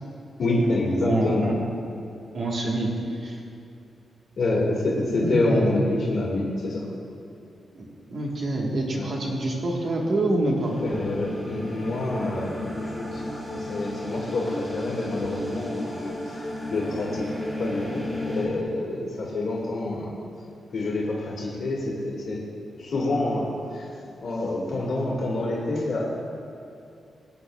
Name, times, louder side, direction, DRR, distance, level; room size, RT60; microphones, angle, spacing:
voice 1, 0.4-1.5 4.4-6.9 9.0-9.1 10.8-13.2 13.5-17.3 17.6-20.2 20.7-22.4 22.8-23.9 24.2-26.0, left 2 dB, 60° left, -5 dB, 1.8 m, -27 dB
voice 2, 1.0-1.5 2.3-3.4 5.2-5.8 7.7-10.7, right 1 dB, 45° right, -2 dB, 1.3 m, -26 dB
sound 1, 10.6-18.5, left 1 dB, 10° right, 2.5 m, -33 dB
19.0 x 8.4 x 2.3 m, 2.6 s
wide cardioid pair, 175°, 0 cm